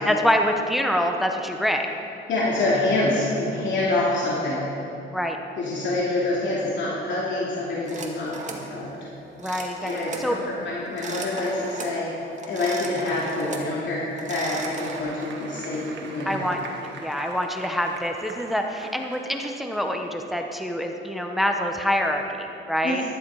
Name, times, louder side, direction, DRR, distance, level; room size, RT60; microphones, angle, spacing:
voice 1, 0.0-2.0 5.1-5.4 9.4-10.4 16.3-16.6 17.0-23.0, equal, ahead, 3 dB, 1.2 m, -25 dB
voice 2, 2.3-4.6 5.6-8.9 9.8-12.1 12.5-16.7 22.8-23.0, left 2 dB, 70° left, -6 dB, 2.7 m, -26 dB
sound 1, 7.9-8.7 9.4-10.3 10.9-12.0 12.4-13.7 14.1-15.0, right 3 dB, 35° right, 2.0 m, -36 dB
Applause, 14.4-20.1, right 4 dB, 70° right, 1.7 m, -42 dB
14.5 x 12.0 x 4.9 m, 2.9 s
cardioid pair, 90°, 20 cm